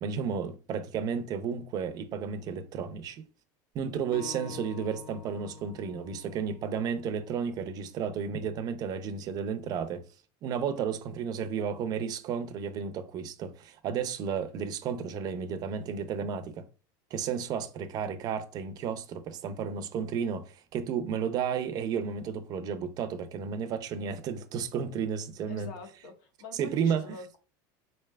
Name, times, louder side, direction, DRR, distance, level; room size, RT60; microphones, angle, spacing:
voice 1, 0.0-3.2 3.7-10.0 10.4-16.7 17.1-25.7 26.6-27.0, right 7 dB, 40° right, 0.6 m, -32 dB
Acoustic guitar, 4.1-7.4, left 6 dB, 50° left, 0.7 m, -47 dB
voice 2, 25.5-27.4, left 3 dB, 85° left, 1.2 m, -45 dB
4.1 x 3.3 x 2.3 m
supercardioid pair, 140°, 10 cm